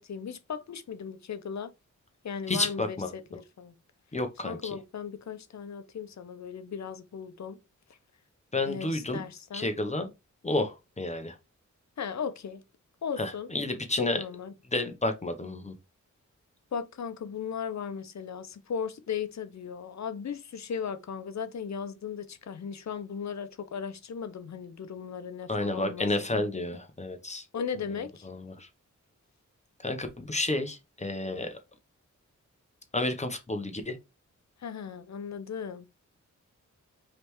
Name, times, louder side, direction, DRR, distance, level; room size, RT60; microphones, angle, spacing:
voice 1, 0.0-1.7 2.2-3.8 4.4-7.6 8.7-9.7 12.0-12.6 13.0-13.5 14.0-14.5 16.7-26.5 27.5-28.3 34.6-35.9, left 7 dB, 60° left, 0.7 m, -37 dB
voice 2, 2.5-3.1 4.1-4.6 8.5-9.2 9.5-10.1 10.4-11.4 13.2-14.2 14.7-15.7 25.5-27.5 28.2-28.7 29.8-31.6 32.9-34.0, left 2 dB, 20° left, 0.8 m, -31 dB
5.0 x 3.3 x 3.0 m
wide cardioid pair, 150°, 31 cm